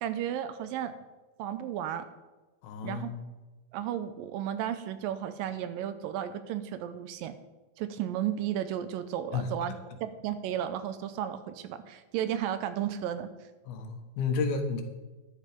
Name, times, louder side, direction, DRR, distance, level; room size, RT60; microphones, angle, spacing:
voice 1, 0.0-0.9 1.4-2.1 2.8-3.1 3.7-7.4 7.8-13.3, right 10 dB, 80° right, 11 dB, 2.3 m, -33 dB
voice 2, 2.6-3.2 9.3-9.5 13.7-14.8, left 5 dB, 80° left, 5 dB, 3.2 m, -31 dB
13.0 x 9.8 x 5.1 m, 1.2 s
omnidirectional pair, 4.2 m